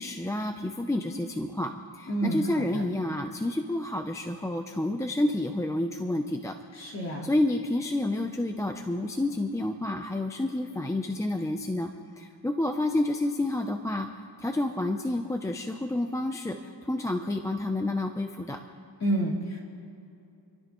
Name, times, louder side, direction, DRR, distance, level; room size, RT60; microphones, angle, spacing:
voice 1, 0.0-6.6 7.2-11.9 12.2-14.1 14.4-18.6, left 1 dB, 5° left, 5 dB, 0.5 m, -29 dB
voice 2, 2.1-2.8 6.7-7.3 19.0-19.6, right 1 dB, 35° left, -6 dB, 4.0 m, -29 dB
28.5 x 13.0 x 3.0 m, 2.8 s
wide cardioid pair, 140°, 46 cm